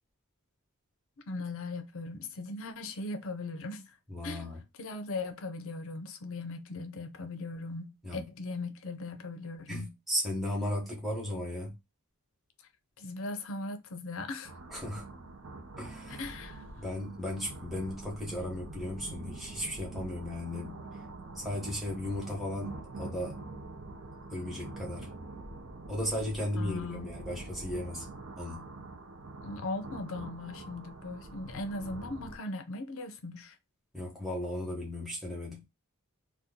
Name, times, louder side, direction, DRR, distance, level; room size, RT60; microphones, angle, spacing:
voice 1, 1.3-4.0 4.2-4.5 4.8-10.0 13.0-14.5 16.1-16.6 26.5-27.1 29.4-33.6, left 2 dB, 60° left, 0.5 m, -39 dB
voice 2, 4.1-4.6 8.0-8.3 9.7-11.7 14.7-15.0 15.8-16.2 16.8-20.8 21.3-23.4 24.3-25.1 25.9-28.1 28.4-28.6 33.9-35.6, left 1 dB, ahead, 0.9 m, -36 dB
sound 1, 14.4-32.4, right 2 dB, 65° right, 0.7 m, -45 dB
2.8 x 2.2 x 3.6 m
head